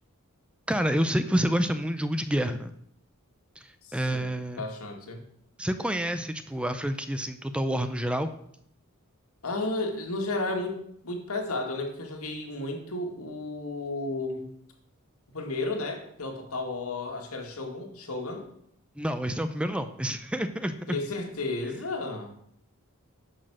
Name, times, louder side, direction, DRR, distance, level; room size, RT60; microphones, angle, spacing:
voice 1, 0.7-2.7 3.6-4.6 5.6-8.3 19.0-21.0, equal, 5° right, 10 dB, 0.5 m, -28 dB
voice 2, 3.8-5.2 9.4-14.5 15.3-18.5 20.9-22.3, left 2 dB, 75° left, 3 dB, 2.2 m, -33 dB
10.5 x 6.4 x 6.3 m, 0.69 s
head